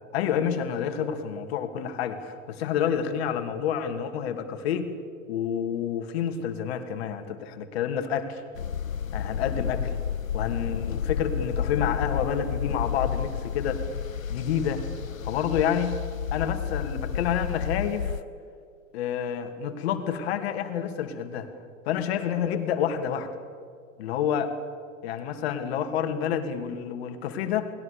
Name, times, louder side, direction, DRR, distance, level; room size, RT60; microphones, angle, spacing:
voice 1, 0.1-4.9 5.3-8.4 9.1-9.9 10.3-13.8 14.3-14.8 15.2-16.0 16.3-18.2 18.9-21.5 21.9-23.3 24.0-24.5 25.0-27.7, left 8 dB, 50° left, 8 dB, 2.7 m, -29 dB
sound 1, 8.5-18.2, left 8 dB, 90° left, 0.6 m, -31 dB
29.5 x 20.5 x 7.0 m, 2.2 s
figure-of-eight pair, 95°, 39 cm